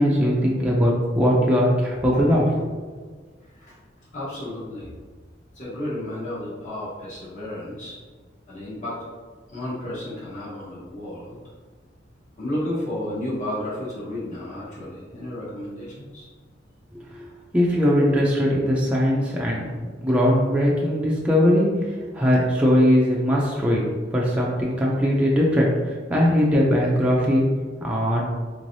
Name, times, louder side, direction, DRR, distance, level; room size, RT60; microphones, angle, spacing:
voice 1, 0.0-2.5 17.1-17.3 17.5-19.7 20.0-21.7 22.1-23.8 24.1-27.5 27.8-28.3, equal, 5° right, -4 dB, 0.4 m, -20 dB
voice 2, 2.1-2.5 3.4-3.8 4.1-4.9 5.5-8.0 8.5-9.0 9.5-11.4 12.4-16.3, left 1 dB, 40° left, -8 dB, 1.2 m, -32 dB
3.6 x 3.1 x 2.6 m, 1.5 s
head